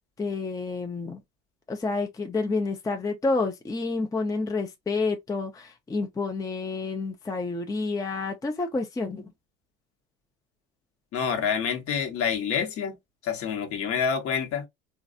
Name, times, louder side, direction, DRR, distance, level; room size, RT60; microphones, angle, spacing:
voice 1, 0.2-1.2 1.7-9.3, left 3 dB, 10° left, 0.5 m, -29 dB
voice 2, 11.1-13.0 13.2-14.7, left 7 dB, 50° left, 1.2 m, -27 dB
3.1 x 2.5 x 2.5 m
hypercardioid pair, 75°, 30 cm